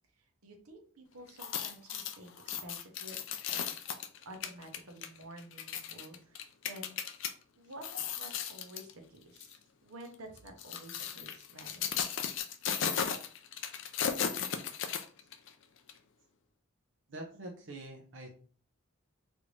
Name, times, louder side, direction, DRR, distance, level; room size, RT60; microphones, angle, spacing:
voice 1, 0.1-3.7 4.2-7.0 7.6-11.9, right 1 dB, 85° right, 3 dB, 0.8 m, -51 dB
sound 1, 1.3-7.3 7.7-8.9 9.4-9.6 10.4-15.5 15.9-16.0, left 8 dB, 60° left, 0.4 m, -36 dB
voice 2, 17.1-18.3, right 1 dB, 60° right, 0 dB, 0.6 m, -45 dB
3.3 x 2.6 x 3.1 m, 0.42 s
head